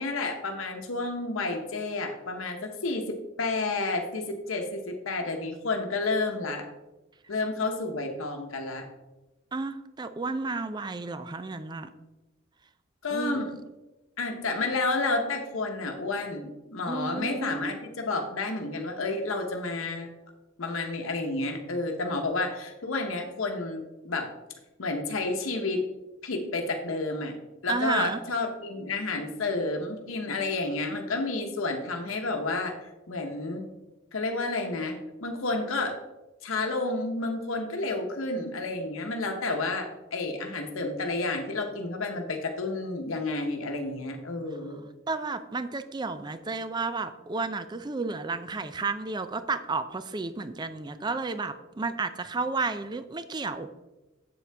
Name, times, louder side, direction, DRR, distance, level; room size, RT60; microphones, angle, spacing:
voice 1, 0.0-6.6 7.3-8.9 13.0-13.5 14.2-20.1 20.6-24.3 24.8-25.9 26.2-27.3 27.6-33.7 34.1-36.0 36.4-44.8, left 3 dB, 85° left, 3 dB, 0.9 m, -30 dB
voice 2, 9.5-11.9 13.1-13.6 16.9-17.7 27.7-28.2 45.1-53.7, right 3 dB, 20° right, 11 dB, 0.4 m, -32 dB
8.0 x 7.3 x 3.4 m, 1.1 s
head